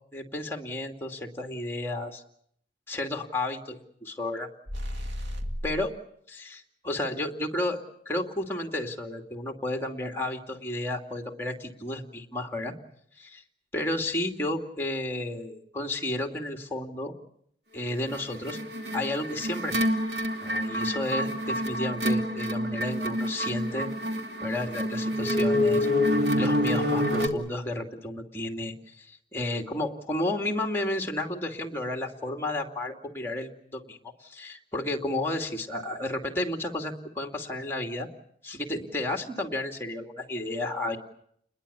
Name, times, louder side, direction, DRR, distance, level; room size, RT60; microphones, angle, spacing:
voice 1, 0.1-2.2 2.9-4.5 5.6-5.9 6.3-7.8 8.1-12.7 13.2-13.4 13.7-17.1 17.7-18.6 18.9-19.7 20.4-23.9 24.4-25.9 26.4-38.1 38.4-41.0, left 1 dB, 15° left, 3 dB, 2.6 m, -32 dB
sound 1, 4.7-5.9, equal, 85° right, 2.3 m, -33 dB
sound 2, 18.1-27.3, equal, 70° right, 2.8 m, -27 dB
29.5 x 21.5 x 7.1 m, 0.71 s
head